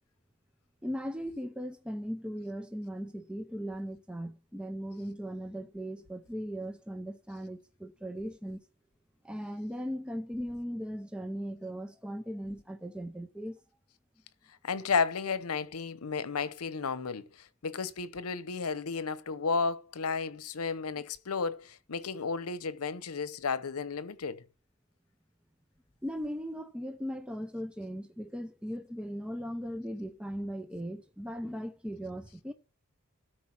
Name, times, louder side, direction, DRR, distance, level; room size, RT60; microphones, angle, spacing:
voice 1, 0.8-8.6 9.2-13.6 26.0-32.5, equal, 5° right, 0.6 m, -38 dB
voice 2, 14.6-24.5, left 5 dB, 85° left, 0.8 m, -33 dB
13.0 x 4.5 x 5.9 m
head